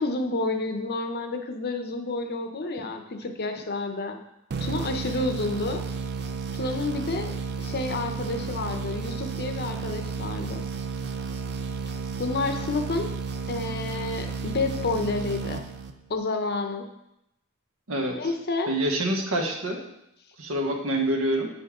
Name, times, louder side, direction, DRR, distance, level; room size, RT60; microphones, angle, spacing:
voice 1, 0.0-4.2 4.6-5.9 6.5-10.6 12.2-13.1 13.5-15.6 16.1-16.9 18.1-18.7, left 3 dB, 50° left, 6 dB, 0.7 m, -30 dB
sound 1, 4.5-16.2, right 5 dB, 50° right, 0.5 m, -32 dB
voice 2, 17.9-18.2 18.7-19.8 20.4-21.5, right 1 dB, 70° right, 2 dB, 1.2 m, -26 dB
8.7 x 5.3 x 3.7 m, 0.84 s
head